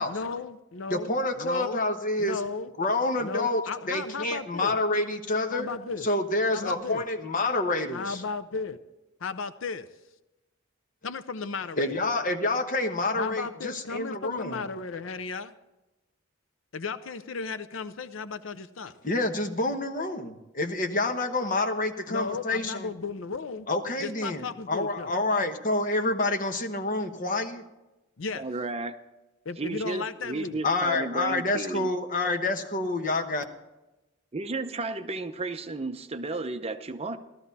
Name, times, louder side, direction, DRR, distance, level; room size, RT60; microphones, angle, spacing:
voice 1, 0.0-1.8 2.2-2.7 3.2-4.8 5.5-6.1 6.5-7.0 7.9-8.8 9.2-9.9 11.0-11.9 13.2-15.5 16.7-18.9 22.1-23.7 24.0-25.1 28.2-28.5 29.5-30.6, left 4 dB, 70° left, 13 dB, 0.6 m, -35 dB
voice 2, 0.9-2.4 2.8-5.7 6.0-8.2 11.8-14.6 19.0-22.9 23.7-27.6 30.6-33.4, left 2 dB, 45° left, 6 dB, 1.1 m, -28 dB
voice 3, 28.4-29.0 29.6-31.9 34.3-37.2, right 3 dB, 30° right, 9 dB, 0.7 m, -33 dB
15.5 x 13.0 x 4.1 m, 1.0 s
head